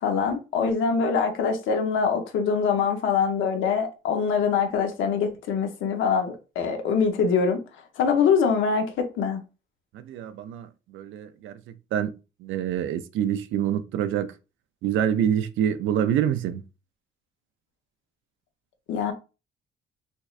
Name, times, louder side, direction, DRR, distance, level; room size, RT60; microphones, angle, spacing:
voice 1, 0.0-7.6 8.0-9.4 18.9-19.1, left 6 dB, 80° left, 0.8 m, -24 dB
voice 2, 9.9-10.7 10.9-11.6 11.9-12.1 12.4-14.3 14.8-16.6, right 9 dB, 80° right, 0.4 m, -26 dB
3.5 x 3.1 x 2.4 m
cardioid pair, 90°, 20 cm